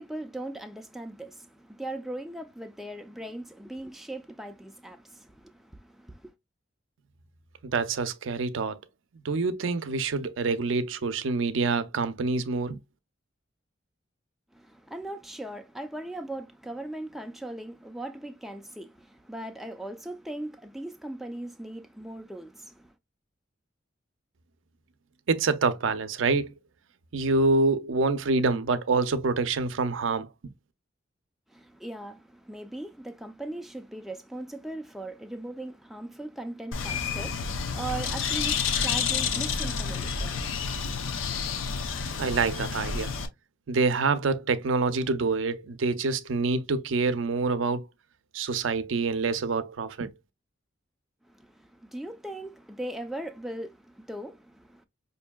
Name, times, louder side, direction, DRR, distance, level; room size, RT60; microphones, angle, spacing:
voice 1, 0.0-6.3 14.5-22.9 31.5-40.7 51.2-54.9, right 1 dB, ahead, 0.3 m, -39 dB
voice 2, 7.6-8.8 9.2-12.8 25.3-26.5 27.1-30.3 42.2-43.1 43.7-47.9 48.3-50.1, right 4 dB, 75° right, 0.5 m, -26 dB
Bird, 36.7-43.3, left 6 dB, 90° left, 0.6 m, -29 dB
5.2 x 2.6 x 2.2 m
head